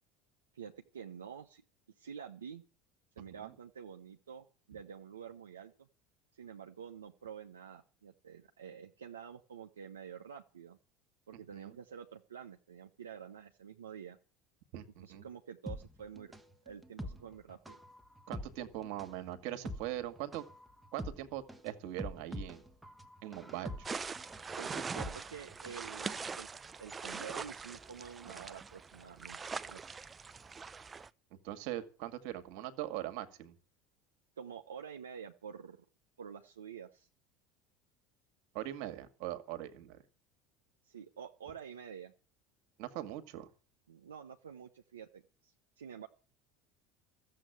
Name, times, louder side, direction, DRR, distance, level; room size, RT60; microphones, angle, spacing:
voice 1, 0.5-1.6 2.0-2.6 3.2-5.9 6.3-10.8 11.3-14.2 15.0-16.3 16.6-17.8 24.6-26.5 26.8-29.4 29.6-29.8 34.4-35.8 36.2-37.1 40.8-42.1 43.9-46.1, right 7 dB, 80° right, 3 dB, 0.9 m, -48 dB
voice 2, 11.3-11.8 14.7-15.3 18.3-20.4 20.9-22.6 23.2-23.7 28.3-28.4 31.4-33.5 38.5-40.0 42.8-43.5, right 13 dB, 60° right, 11 dB, 1.9 m, -41 dB
sound 1, 15.7-25.9 26.2-26.3, equal, 10° right, 1.5 m, -45 dB
sound 2, 23.8-31.1, right 5 dB, 25° right, 0.7 m, -42 dB
14.0 x 7.7 x 9.4 m, 0.38 s
hypercardioid pair, 70°, 0 cm